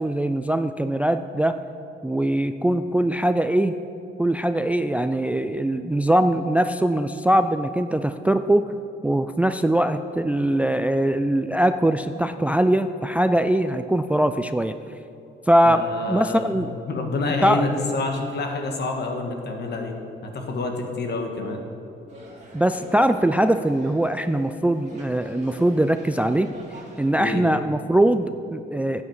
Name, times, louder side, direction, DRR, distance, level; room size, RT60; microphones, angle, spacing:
voice 1, 0.0-1.6 2.0-3.8 4.2-8.7 9.0-14.7 15.5-16.7 17.4-17.6 22.5-26.5 27.0-29.0, right 1 dB, 5° right, 10 dB, 0.3 m, -21 dB
voice 2, 15.6-19.9 20.2-21.6 27.2-27.4, left 3 dB, 60° left, 3 dB, 1.6 m, -28 dB
sound 1, 22.1-27.1, right 2 dB, 35° right, 2.2 m, -44 dB
12.5 x 8.6 x 4.7 m, 2.7 s
cardioid pair, 90°, 20 cm